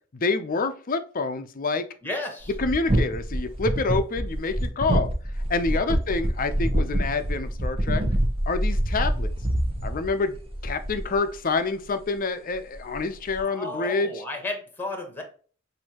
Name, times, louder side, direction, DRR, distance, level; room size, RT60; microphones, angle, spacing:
voice 1, 0.1-1.8 2.6-5.1 5.5-8.0 8.5-9.3 9.8-10.4 10.6-14.1, left 3 dB, 45° left, 10 dB, 0.5 m, -27 dB
voice 2, 2.0-2.5 5.8-6.0 13.4-15.2, left 2 dB, 10° left, 3 dB, 1.1 m, -33 dB
sound 1, 2.4-11.3 12.8-13.0 13.3-13.4, right 1 dB, 30° right, 0.9 m, -26 dB
6.2 x 2.7 x 2.9 m, 0.41 s
head